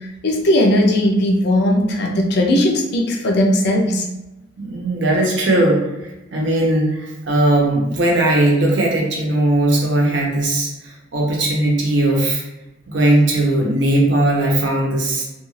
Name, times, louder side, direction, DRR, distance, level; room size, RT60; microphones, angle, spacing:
voice 1, 0.2-4.1, left 1 dB, 55° left, 1 dB, 0.4 m, -17 dB
voice 2, 4.6-5.8 6.3-12.4 12.9-15.2, right 1 dB, 65° right, -2 dB, 0.7 m, -18 dB
2.3 x 2.3 x 3.1 m, 1.0 s
head